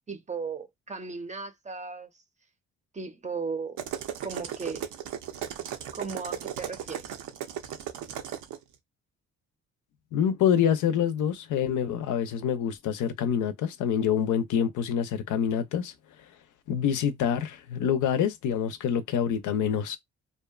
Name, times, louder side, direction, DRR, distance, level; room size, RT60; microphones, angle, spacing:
voice 1, 0.1-2.1 2.9-3.8 4.2-4.8 5.9-7.2, right 4 dB, 25° right, 0.6 m, -36 dB
sound 1, 3.8-8.6, right 10 dB, 80° right, 0.6 m, -36 dB
voice 2, 10.1-15.9 16.7-20.0, left 8 dB, 80° left, 0.6 m, -26 dB
2.7 x 2.2 x 2.3 m
cardioid pair, 90°, 30 cm